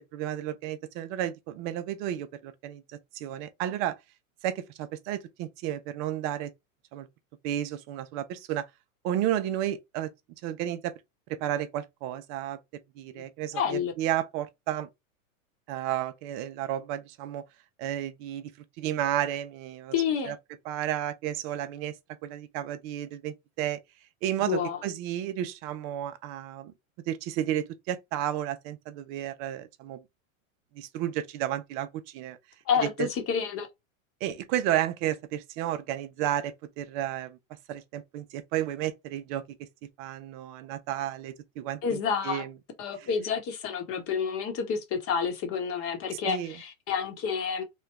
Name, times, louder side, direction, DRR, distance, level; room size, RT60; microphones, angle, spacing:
voice 1, 0.0-2.8 3.1-4.0 4.4-6.5 6.9-7.1 7.4-8.7 9.0-10.1 10.4-10.9 11.4-12.6 13.0-14.9 15.7-17.4 17.8-18.5 18.8-19.9 20.2-20.4 20.7-21.9 22.2-23.8 24.2-26.7 27.1-30.0 30.7-32.4 32.8-33.1 34.2-37.4 37.7-39.4 40.0-42.0 42.2-42.5 46.2-46.5, right 12 dB, 35° right, 0.4 m, -32 dB
voice 2, 13.5-13.9 19.9-20.3 24.5-24.8 32.7-33.7 41.8-42.4 42.8-47.6, left 6 dB, 35° left, 1.0 m, -29 dB
3.1 x 2.2 x 3.3 m
hypercardioid pair, 125°, 41 cm